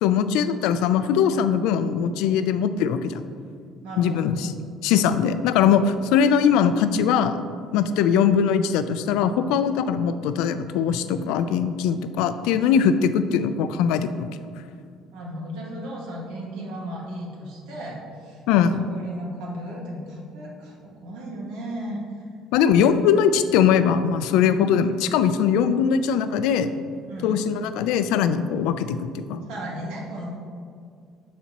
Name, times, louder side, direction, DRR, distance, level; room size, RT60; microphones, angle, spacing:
voice 1, 0.0-3.2 4.0-4.5 4.8-7.4 7.7-14.3 18.5-18.8 22.5-26.7 27.2-29.4, left 7 dB, 90° left, 11 dB, 0.4 m, -21 dB
voice 2, 3.8-4.3 15.1-22.2 22.7-22.9 27.1-27.4 29.5-30.3, right 1 dB, 85° right, -2 dB, 1.7 m, -35 dB
11.5 x 4.2 x 2.9 m, 2.2 s
cardioid pair, 135°, 0 cm